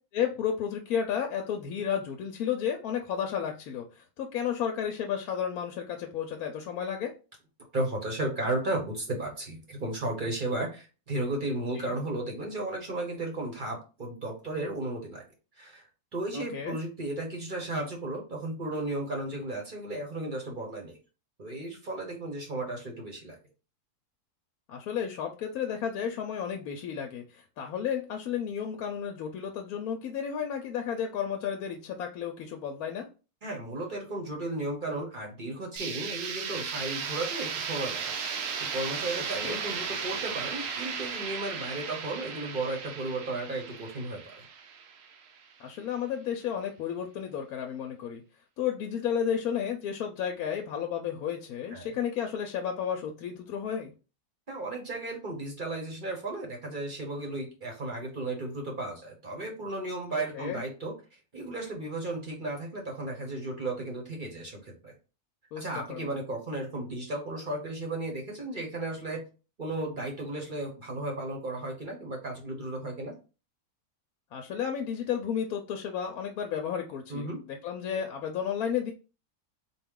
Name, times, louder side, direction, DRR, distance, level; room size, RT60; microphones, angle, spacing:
voice 1, 0.1-7.1 11.8-12.0 16.3-16.8 24.7-33.1 39.4-39.6 45.6-48.2 48.6-53.9 60.1-60.6 65.5-66.1 74.3-78.9, left 8 dB, 75° left, 4 dB, 1.0 m, -32 dB
voice 2, 7.7-15.2 15.6-15.8 16.1-21.0 21.4-23.4 33.4-38.1 38.6-44.3 51.7-51.9 54.5-60.9 61.3-64.9 65.6-69.3 69.6-73.1 77.1-77.4, right 2 dB, 40° right, 1 dB, 0.9 m, -34 dB
sound 1, 35.8-45.5, right 6 dB, 65° right, 0.9 m, -35 dB
4.1 x 2.3 x 3.6 m, 0.33 s
omnidirectional pair, 1.7 m